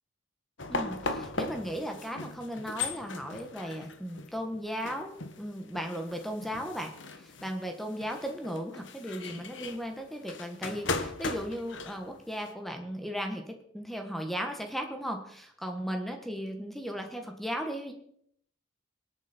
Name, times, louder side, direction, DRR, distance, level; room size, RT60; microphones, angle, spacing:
sound 1, 0.6-12.5, left 3 dB, 65° left, 1.3 m, -38 dB
voice 1, 0.7-17.9, equal, ahead, 4 dB, 1.5 m, -36 dB
24.5 x 9.0 x 4.4 m, 0.68 s
head